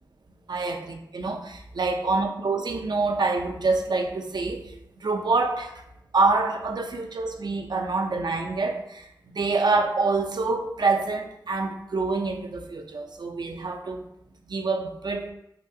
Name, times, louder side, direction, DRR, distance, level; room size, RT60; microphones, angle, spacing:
voice 1, 0.5-5.8 6.1-14.0 14.5-15.3, right 3 dB, 60° right, 3 dB, 0.4 m, -26 dB
3.5 x 2.3 x 2.5 m, 0.79 s
cardioid pair, 50°, 8 cm